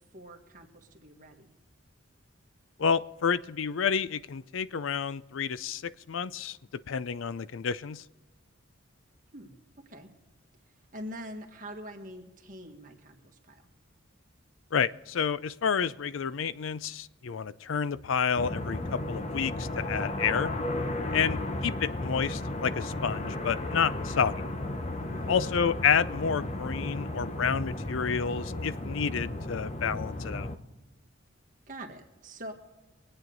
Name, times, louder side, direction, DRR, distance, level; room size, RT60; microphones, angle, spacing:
voice 1, 0.1-1.5 9.3-9.5 9.8-10.1 10.9-13.7 21.1-21.4 25.1-25.4 31.7-32.5, equal, 40° right, 3 dB, 1.6 m, -44 dB
voice 2, 2.8-6.6 6.9-8.0 14.7-20.5 21.1-24.5 25.3-30.5, left 6 dB, 75° left, 17 dB, 0.4 m, -29 dB
sound 1, 18.4-30.6, left 1 dB, 30° left, 0.8 m, -34 dB
23.5 x 9.1 x 3.9 m, 1.1 s
head